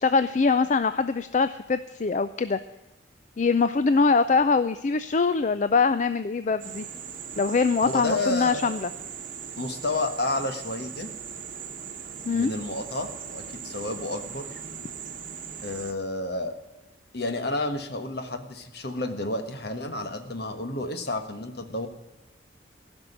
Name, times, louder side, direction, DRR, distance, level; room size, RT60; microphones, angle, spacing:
voice 1, 0.0-2.6 3.4-6.8 7.4-8.9 12.3-12.5, left 4 dB, 40° left, 12 dB, 0.4 m, -23 dB
sound 1, 6.6-15.9, right 7 dB, 45° right, 1.2 m, -39 dB
voice 2, 7.8-8.7 9.6-11.1 12.3-14.6 15.6-16.5 17.1-21.9, left 2 dB, 60° left, 7 dB, 1.5 m, -31 dB
15.5 x 6.2 x 10.0 m, 1.1 s
head